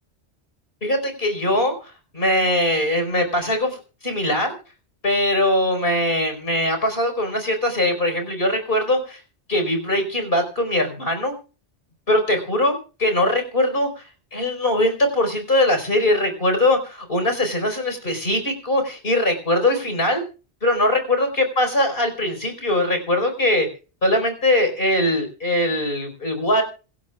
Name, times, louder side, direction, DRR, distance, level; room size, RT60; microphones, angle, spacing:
voice 1, 0.8-4.5 5.0-9.2 9.5-11.4 12.1-14.0 14.3-20.2 20.6-23.7 24.0-26.6, left 1 dB, 50° left, 6 dB, 5.2 m, -21 dB
26.5 x 13.5 x 2.4 m, 0.35 s
omnidirectional pair, 1.2 m